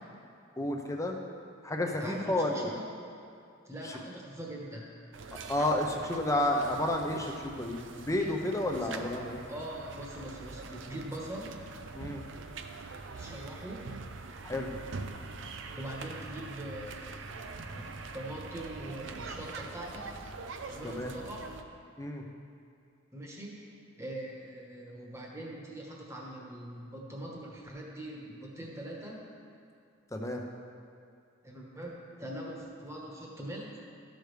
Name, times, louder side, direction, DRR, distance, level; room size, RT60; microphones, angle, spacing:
voice 1, 0.6-1.2 1.6-2.7 3.8-3.9 5.5-9.4 11.9-12.2 14.4-14.7 20.8-21.1 22.0-22.2 30.1-30.4, left 1 dB, 15° left, 1 dB, 0.6 m, -31 dB
voice 2, 2.0-2.9 3.6-5.0 8.6-9.0 9.5-11.6 13.1-13.9 15.4-17.9 18.1-20.1 20.7-21.4 23.1-29.2 31.4-33.8, right 1 dB, 15° right, -3 dB, 1.2 m, -42 dB
sound 1, 5.1-21.6, right 4 dB, 65° right, 0.5 m, -44 dB
13.5 x 6.4 x 3.3 m, 2.4 s
head